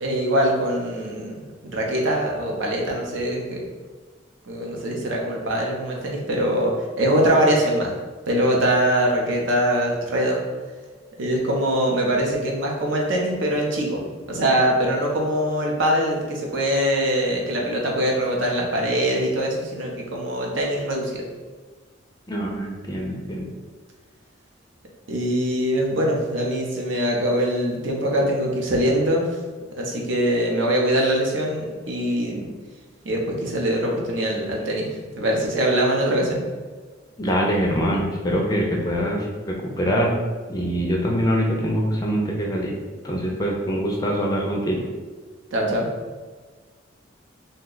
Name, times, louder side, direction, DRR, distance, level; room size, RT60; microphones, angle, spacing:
voice 1, 0.0-3.7 4.5-7.9 8.3-10.4 11.2-21.2 25.1-29.4 29.8-32.5 33.0-36.4 45.5-45.9, equal, 70° right, -1 dB, 0.6 m, -23 dB
voice 2, 22.3-23.5 37.2-40.1 40.5-42.7 43.0-44.8, equal, 20° left, -1 dB, 0.4 m, -24 dB
2.7 x 2.2 x 3.8 m, 1.4 s
head